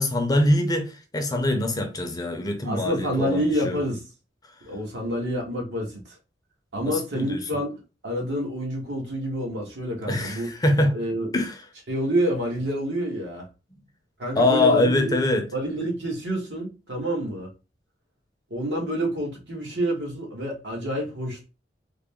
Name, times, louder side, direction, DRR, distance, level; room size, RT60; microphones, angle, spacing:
voice 1, 0.0-3.8 6.9-7.4 10.1-10.9 11.3-11.6 14.4-15.4, left 1 dB, 20° left, 0.6 m, -23 dB
voice 2, 2.6-4.0 4.6-6.2 6.7-10.5 10.9-11.3 11.9-13.5 14.2-15.2 15.5-17.5 18.5-21.5, equal, 70° right, 1.4 m, -28 dB
3.8 x 2.1 x 3.5 m
head